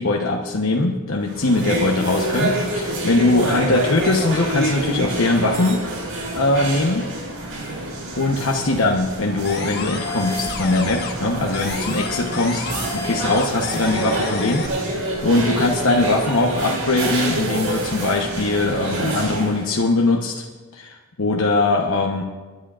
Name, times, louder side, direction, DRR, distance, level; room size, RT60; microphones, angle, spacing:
voice 1, 0.0-5.8 6.3-7.0 8.2-12.6 13.0-20.4 20.7-22.2, left 2 dB, 80° left, 0 dB, 1.0 m, -21 dB
sound 1, 1.2-19.7, right 1 dB, 80° right, 4.9 m, -27 dB
sound 2, 9.4-11.3 11.5-14.7, left 5 dB, 50° left, 1.4 m, -31 dB
26.5 x 11.0 x 2.5 m, 1.3 s
head